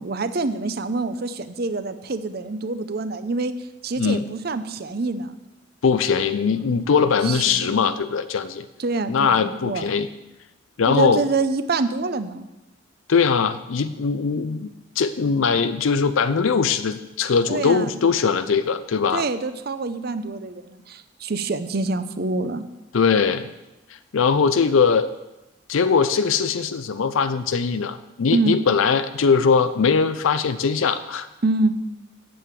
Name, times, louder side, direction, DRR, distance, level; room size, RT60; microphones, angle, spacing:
voice 1, 0.0-3.5 3.8-5.4 6.6-6.9 7.2-7.9 8.8-9.9 10.9-12.5 17.5-17.9 19.1-22.6 28.3-28.6 31.4-31.7, right 3 dB, 50° right, 11 dB, 0.6 m, -26 dB
voice 2, 5.8-8.7 9.1-10.1 10.8-11.2 13.1-19.2 22.9-23.5 23.9-25.1 25.7-31.3, left 5 dB, 80° left, 11 dB, 0.5 m, -21 dB
7.8 x 7.7 x 8.3 m, 0.99 s
head